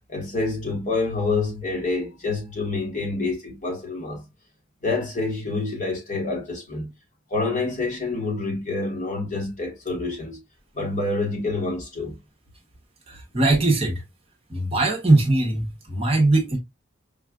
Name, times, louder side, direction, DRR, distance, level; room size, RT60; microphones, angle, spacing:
voice 1, 0.1-4.2 4.8-6.9 7.3-10.4 10.7-12.2, left 3 dB, 40° left, 1.4 m, -27 dB
voice 2, 13.1-14.0 14.5-16.6, right 2 dB, 30° right, 0.9 m, -20 dB
5.2 x 2.4 x 2.3 m
head